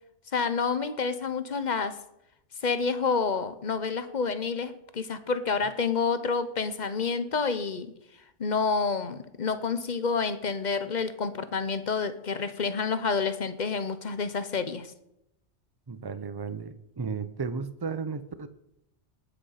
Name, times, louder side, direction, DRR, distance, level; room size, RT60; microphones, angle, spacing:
voice 1, 0.3-2.0 2.6-7.9 8.4-14.9, left 5 dB, 40° left, 12 dB, 0.9 m, -29 dB
voice 2, 15.9-18.5, right 5 dB, 25° right, 12 dB, 0.6 m, -34 dB
18.5 x 6.9 x 5.7 m, 0.82 s
omnidirectional pair, 1.2 m